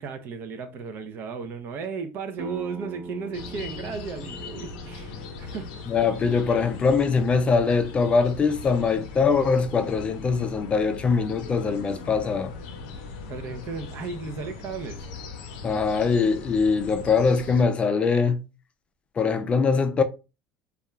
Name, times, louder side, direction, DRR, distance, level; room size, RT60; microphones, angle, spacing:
voice 1, 0.0-5.7 13.3-15.1, right 5 dB, 50° right, 0.5 m, -35 dB
sound 1, 2.4-7.8, right 3 dB, 90° right, 0.7 m, -43 dB
sound 2, 3.3-17.6, left 4 dB, 85° left, 0.5 m, -39 dB
voice 2, 5.9-12.5 15.6-18.4 19.2-20.0, left 5 dB, 25° left, 0.3 m, -22 dB
2.3 x 2.2 x 3.0 m
supercardioid pair, 125°, 5 cm